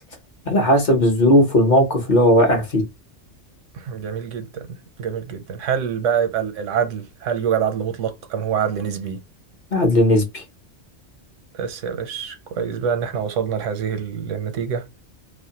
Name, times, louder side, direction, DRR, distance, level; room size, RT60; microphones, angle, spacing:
voice 1, 0.5-2.8 9.7-10.4, left 1 dB, 45° left, 0.8 m, -16 dB
voice 2, 3.7-4.7 5.0-9.2 11.5-15.0, right 8 dB, 85° right, 1.0 m, -25 dB
2.5 x 2.1 x 2.7 m
omnidirectional pair, 1.2 m